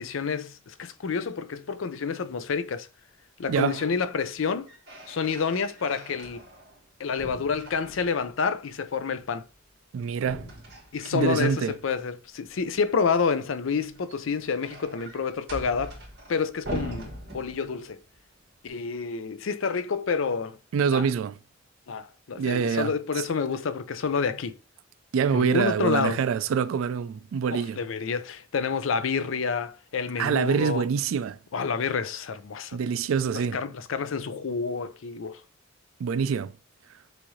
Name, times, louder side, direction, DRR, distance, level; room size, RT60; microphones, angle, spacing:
voice 1, 0.0-2.9 3.4-4.7 5.1-6.4 7.0-9.5 10.9-16.0 16.3-18.0 18.6-20.6 20.9-21.1 21.9-24.5 25.3-26.2 27.5-30.8 31.5-32.8 33.3-35.4, left 5 dB, 75° left, 0.5 m, -29 dB
sound 1, 3.4-4.0 4.4-6.9 7.2-8.4 10.2-11.8 13.8-18.0, right 1 dB, 55° right, 1.9 m, -42 dB
voice 2, 3.5-3.8 9.9-10.5 11.1-11.7 20.7-21.3 22.4-23.2 25.1-27.8 30.2-31.4 32.7-33.6 36.0-36.5, right 6 dB, 80° right, 0.3 m, -25 dB
6.2 x 2.5 x 3.1 m
head